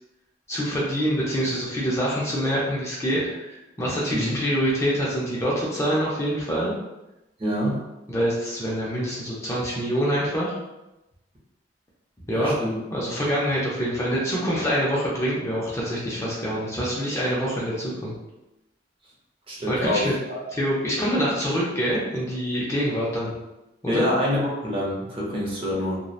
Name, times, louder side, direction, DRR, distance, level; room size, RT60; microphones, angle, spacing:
voice 1, 0.5-6.7 8.1-10.6 12.3-12.6 12.9-18.1 19.7-20.1 20.5-23.3 23.8-24.0, equal, 15° left, -6 dB, 0.4 m, -25 dB
voice 2, 7.4-7.8 12.3-12.8 19.5-20.1 23.9-26.0, left 1 dB, 30° right, -4 dB, 0.6 m, -26 dB
2.7 x 2.0 x 2.3 m, 0.96 s
head